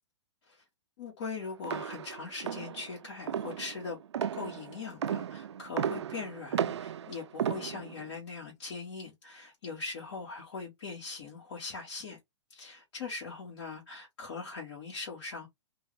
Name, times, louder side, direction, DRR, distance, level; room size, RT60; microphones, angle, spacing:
voice 1, 1.0-4.0 4.3-12.2 12.5-15.5, left 4 dB, 55° left, 1.9 m, -41 dB
sound 1, 1.6-8.1, right 9 dB, 75° right, 0.4 m, -35 dB
4.5 x 2.5 x 3.3 m
hypercardioid pair, 115°, 15 cm